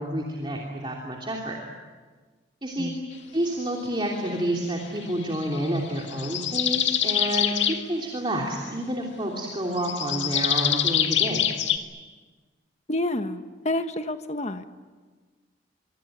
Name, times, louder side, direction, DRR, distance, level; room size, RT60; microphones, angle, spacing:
voice 1, 0.0-1.6 2.6-2.9 3.3-11.5, right 1 dB, 25° right, -1 dB, 3.1 m, -29 dB
sound 1, 5.3-7.8 9.8-11.8, left 10 dB, 75° left, 2.0 m, -25 dB
voice 2, 12.9-14.6, left 1 dB, 35° left, 8 dB, 1.3 m, -29 dB
25.5 x 24.5 x 9.3 m, 1.4 s
head